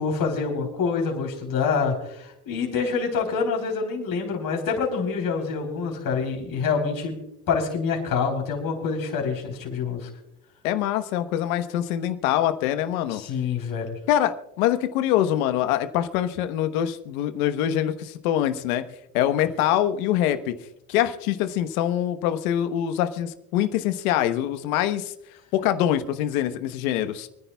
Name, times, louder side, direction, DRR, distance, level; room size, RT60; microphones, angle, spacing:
voice 1, 0.0-7.2 7.5-10.1 13.1-13.9, left 5 dB, 50° left, 1 dB, 3.7 m, -26 dB
voice 2, 10.6-13.2 14.1-18.8 19.1-20.5 20.9-25.1 25.5-27.3, left 11 dB, 80° left, 10 dB, 1.2 m, -24 dB
29.0 x 10.0 x 2.3 m, 0.79 s
supercardioid pair, 80°, 42 cm